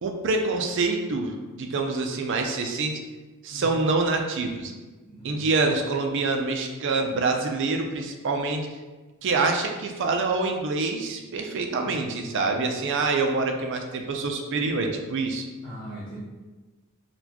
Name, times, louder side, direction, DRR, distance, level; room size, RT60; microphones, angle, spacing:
voice 1, 0.0-3.0 3.4-4.7 5.2-8.7 9.2-15.5, right 3 dB, 55° right, 4 dB, 0.4 m, -26 dB
voice 2, 5.0-5.5 11.8-12.7 15.6-16.2, equal, 20° left, -11 dB, 0.8 m, -41 dB
4.1 x 2.2 x 2.9 m, 1.2 s
head